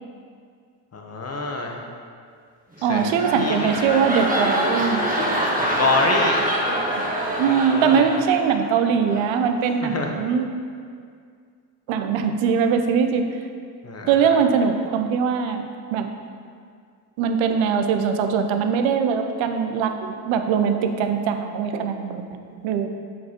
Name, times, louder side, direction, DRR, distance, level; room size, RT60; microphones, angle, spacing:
voice 1, 0.9-1.8 2.9-4.0 5.8-6.5 7.5-8.1 9.8-10.1 13.8-14.4, left 3 dB, 30° left, 1 dB, 1.2 m, -27 dB
sound 1, 2.7-8.7 9.1-9.4, equal, 15° right, 1.5 m, -25 dB
voice 2, 2.8-5.0 6.7-10.5 11.9-13.4 14.1-16.1 17.2-22.9, right 6 dB, 70° right, 6 dB, 0.8 m, -22 dB
7.3 x 4.6 x 4.4 m, 2.2 s
hypercardioid pair, 55°, 49 cm